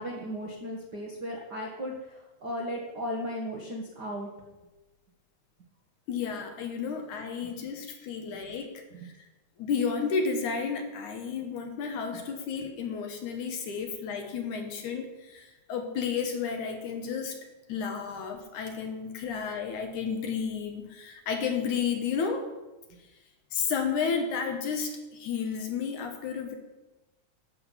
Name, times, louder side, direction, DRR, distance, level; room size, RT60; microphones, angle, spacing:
voice 1, 0.0-4.3 7.4-7.5 9.0-9.1 12.1-12.2, equal, 55° right, -2 dB, 1.2 m, -36 dB
voice 2, 6.1-9.1 9.6-17.4 17.7-22.5 23.5-26.5, left 6 dB, 65° left, 4 dB, 2.4 m, -32 dB
13.0 x 5.7 x 7.0 m, 1.1 s
omnidirectional pair, 4.0 m